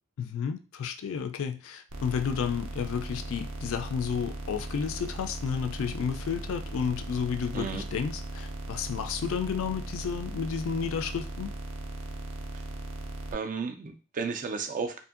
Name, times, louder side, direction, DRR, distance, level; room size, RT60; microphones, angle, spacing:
voice 1, 0.2-11.5, left 7 dB, 65° left, 7 dB, 0.3 m, -32 dB
sound 1, 1.9-13.3, right 1 dB, 85° right, 0.5 m, -38 dB
voice 2, 13.3-15.0, right 5 dB, 35° right, 7 dB, 0.3 m, -33 dB
2.6 x 2.6 x 2.4 m, 0.34 s
head